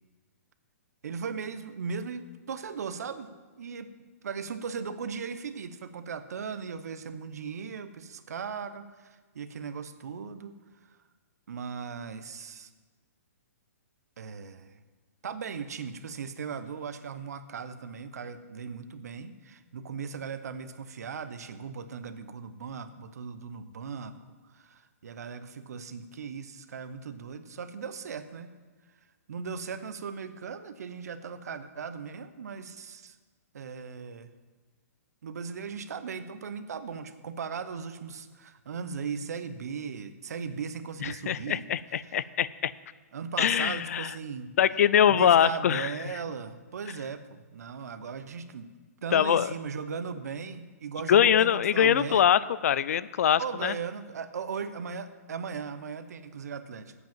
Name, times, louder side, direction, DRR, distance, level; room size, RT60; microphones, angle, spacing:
voice 1, 1.0-3.3 3.6-3.9 4.2-10.5 10.8-11.0 11.5-12.7 14.2-14.8 15.2-24.2 24.5-28.5 29.3-33.2 33.5-34.3 35.2-41.6 42.1-42.2 43.1-44.5 45.1-48.7 49.0-52.4 53.4-56.9, right 6 dB, 75° right, 11 dB, 0.8 m, -38 dB
voice 2, 41.0-42.7 43.4-44.1 44.6-45.9 49.1-49.5 51.1-53.7, left 9 dB, 65° left, 18 dB, 0.4 m, -23 dB
8.1 x 7.7 x 7.3 m, 1.4 s
hypercardioid pair, 150°, 9 cm